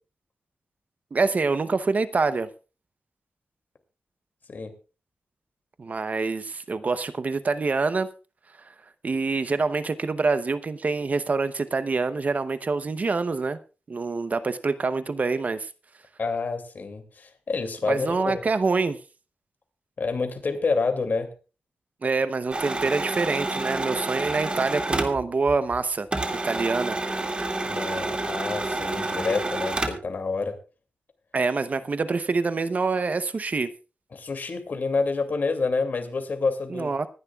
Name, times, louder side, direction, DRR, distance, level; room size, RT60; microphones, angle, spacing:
voice 1, 1.1-2.5 5.8-8.1 9.0-13.6 13.9-15.7 17.9-19.0 22.0-26.1 26.4-27.0 31.3-33.7 36.7-37.1, right 4 dB, 45° right, 0.7 m, -26 dB
voice 2, 16.2-18.4 20.0-21.3 27.6-30.5 34.1-36.9, left 4 dB, 55° left, 2.4 m, -28 dB
sound 1, 22.5-25.8 26.1-30.1, right 2 dB, 30° right, 2.2 m, -29 dB
25.0 x 10.5 x 2.3 m
wide cardioid pair, 100°, 4 cm